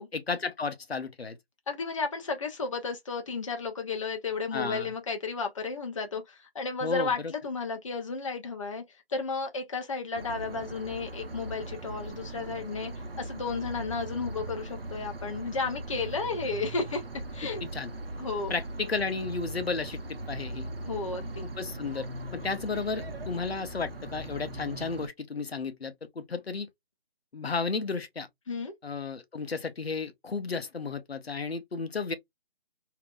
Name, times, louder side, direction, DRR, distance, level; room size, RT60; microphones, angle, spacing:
voice 1, 0.1-1.4 4.5-4.9 6.8-7.3 17.6-17.9 18.5-20.0 20.3-20.7 21.6-22.1 22.3-26.7 27.3-28.3 28.8-32.1, left 4 dB, 90° left, 0.8 m, -33 dB
voice 2, 1.7-8.8 9.1-12.9 13.2-17.0 17.3-17.6 18.2-18.5 20.9-21.5 28.5-28.7, left 4 dB, 35° left, 0.7 m, -33 dB
sound 1, 10.1-25.1, right 1 dB, 70° right, 0.8 m, -39 dB
3.2 x 2.9 x 2.3 m
figure-of-eight pair, 155°, 30 cm